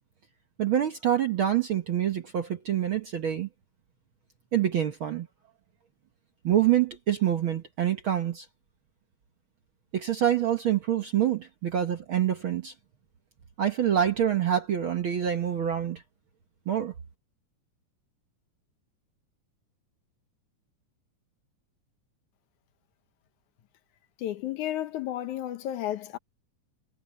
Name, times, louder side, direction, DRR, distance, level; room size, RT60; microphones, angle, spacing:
voice 1, 0.6-3.5 4.5-5.3 6.4-8.5 9.9-12.7 13.6-16.0 16.7-16.9, right 10 dB, 60° right, 1.4 m, -26 dB
voice 2, 24.2-26.2, left 12 dB, 75° left, 2.4 m, -32 dB
omnidirectional pair, 3.6 m